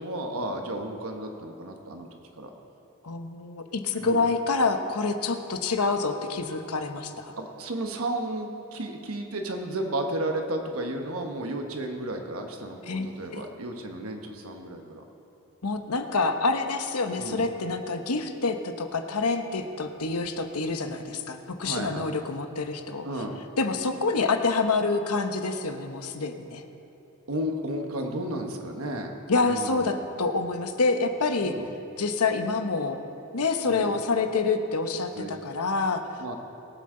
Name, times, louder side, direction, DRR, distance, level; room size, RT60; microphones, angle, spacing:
voice 1, 0.0-2.1 2.4-2.5 4.0-4.2 7.4-15.0 17.2-17.5 21.6-22.1 23.0-23.4 27.3-29.1 29.4-29.9 31.4-31.7 33.6-33.9 35.1-35.3 36.2-36.3, right 1 dB, 70° right, 3 dB, 1.1 m, -33 dB
voice 2, 3.0-7.3 12.9-13.5 15.6-23.1 23.6-26.6 29.3-31.5 32.0-33.0 33.3-36.0, left 3 dB, 90° left, 6 dB, 1.0 m, -27 dB
22.0 x 8.1 x 3.8 m, 2.9 s
head